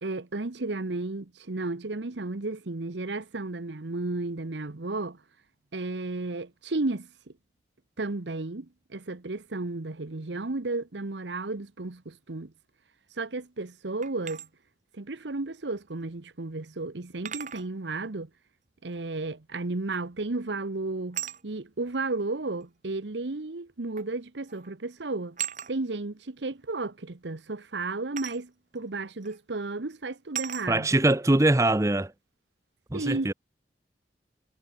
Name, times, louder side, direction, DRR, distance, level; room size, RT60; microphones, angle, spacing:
voice 1, 0.0-5.2 5.7-7.1 8.0-12.5 13.1-14.5 14.9-18.3 18.8-25.4 25.7-30.9 32.9-33.3, right 2 dB, 85° right, 1.1 m, -33 dB
sound 1, 14.0-14.5 16.0-16.1 17.2-17.7 19.9-20.2 21.1-21.4 22.6-22.7 24.0-24.2 24.5-24.7 25.4-25.7 28.2-28.4 29.2-29.4 30.3-30.7, right 10 dB, 45° right, 3.9 m, -36 dB
voice 2, 30.7-32.1 32.9-33.3, right 2 dB, 15° right, 0.7 m, -22 dB
head